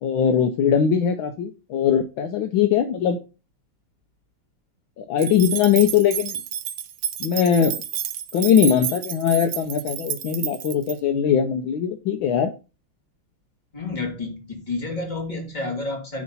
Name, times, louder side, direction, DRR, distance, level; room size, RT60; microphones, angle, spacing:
voice 1, 0.0-3.2 5.0-6.4 7.2-7.7 8.3-12.5, left 8 dB, 70° left, 7 dB, 1.5 m, -20 dB
sound 1, 5.2-11.0, right 10 dB, 65° right, 1.2 m, -30 dB
voice 2, 13.7-16.2, left 3 dB, 20° left, 1 dB, 2.8 m, -30 dB
9.8 x 4.2 x 5.4 m, 0.30 s
omnidirectional pair, 2.4 m